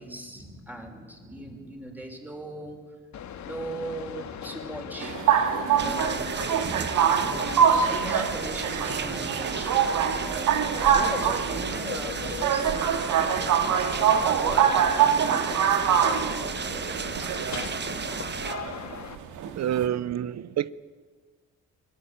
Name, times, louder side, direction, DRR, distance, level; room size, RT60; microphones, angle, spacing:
voice 1, 0.0-2.8 3.4-5.2 5.8-6.5 7.7-9.7 10.3-12.7 13.1-14.0 14.2-15.2 15.8-16.6, right 1 dB, 5° right, 5.6 m, -39 dB
sound 1, 3.1-19.2, left 8 dB, 65° left, 2.1 m, -39 dB
sound 2, 5.0-19.9, right 8 dB, 85° right, 2.1 m, -24 dB
sound 3, 5.8-18.5, right 6 dB, 35° right, 1.3 m, -34 dB
voice 2, 19.6-20.7, right 10 dB, 60° right, 0.8 m, -28 dB
25.5 x 18.0 x 9.0 m
cardioid pair, 90°, 30 cm